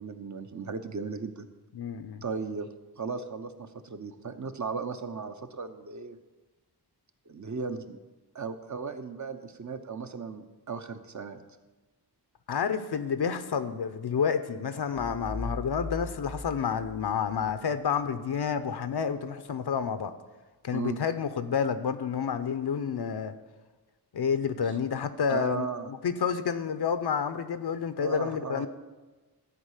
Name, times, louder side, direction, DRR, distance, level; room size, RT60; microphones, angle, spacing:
voice 1, 0.0-1.5 2.2-2.7 3.0-6.2 7.3-8.0 8.3-11.4 20.7-21.0 24.7-24.8 25.3-25.9 28.0-28.7, right 5 dB, 45° right, 8 dB, 0.9 m, -36 dB
voice 2, 1.7-2.2 12.5-20.1 20.6-23.3 24.1-28.7, left 6 dB, 70° left, 11 dB, 0.7 m, -29 dB
sound 1, 15.0-17.6, left 2 dB, 10° left, 0.7 m, -39 dB
13.5 x 4.8 x 8.1 m, 1.2 s
wide cardioid pair, 80°, 40 cm